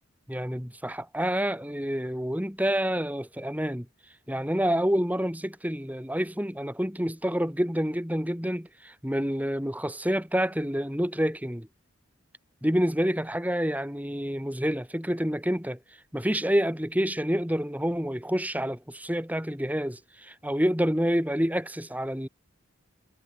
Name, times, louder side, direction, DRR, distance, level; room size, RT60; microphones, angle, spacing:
voice 1, 0.3-3.9 4.3-11.7 12.6-15.8 16.1-22.3, equal, 10° right, 7.0 m, -28 dB
head